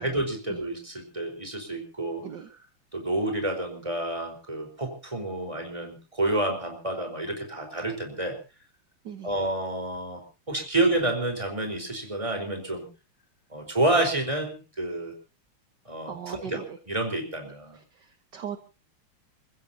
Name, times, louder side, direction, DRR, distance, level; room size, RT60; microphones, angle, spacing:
voice 1, 0.0-2.2 2.9-8.4 9.2-10.2 10.5-12.8 13.5-15.1 15.9-17.8, right 2 dB, 15° right, 4 dB, 4.5 m, -29 dB
voice 2, 16.1-16.8 17.7-18.6, right 8 dB, 55° right, 7 dB, 1.8 m, -39 dB
29.0 x 15.0 x 2.8 m, 0.33 s
omnidirectional pair, 2.4 m